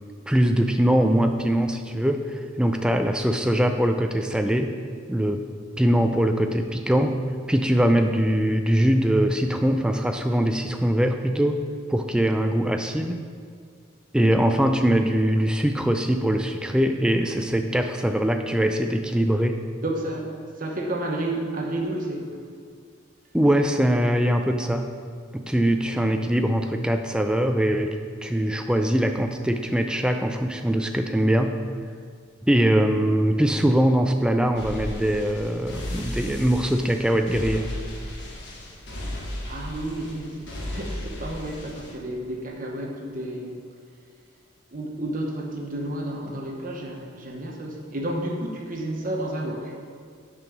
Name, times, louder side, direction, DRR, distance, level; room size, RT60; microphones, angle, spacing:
voice 1, 0.3-4.8 5.1-5.4 5.8-7.2 7.5-11.6 11.9-13.2 14.1-19.6 23.3-24.9 25.3-27.9 28.2-31.6 32.4-37.7, equal, 5° right, 5 dB, 0.3 m, -22 dB
voice 2, 19.8-22.4 39.4-43.6 44.7-49.8, right 1 dB, 40° right, 0 dB, 0.9 m, -31 dB
sound 1, 34.5-41.9, left 1 dB, 55° left, 1.2 m, -35 dB
6.8 x 5.3 x 5.9 m, 2.1 s
head